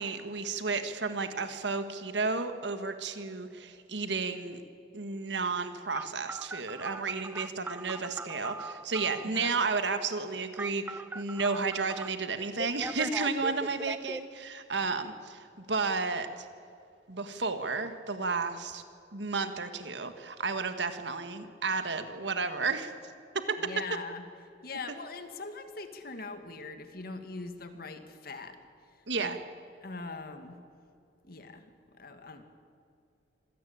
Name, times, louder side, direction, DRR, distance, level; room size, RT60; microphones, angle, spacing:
voice 1, 0.0-4.6 4.9-16.5 17.1-18.8 19.1-22.9 23.3-23.6 29.1-29.4, right 4 dB, 75° right, 9 dB, 1.7 m, -32 dB
Telephone, 5.9-9.3 10.6-12.1 12.6-14.2, right 2 dB, 10° right, 0.5 m, -40 dB
voice 2, 9.2-9.6 23.6-24.2 24.6-28.6 29.2-29.3 29.8-30.6 31.2-32.4, left 3 dB, 55° left, 7 dB, 2.1 m, -42 dB
26.0 x 17.5 x 8.8 m, 2.6 s
head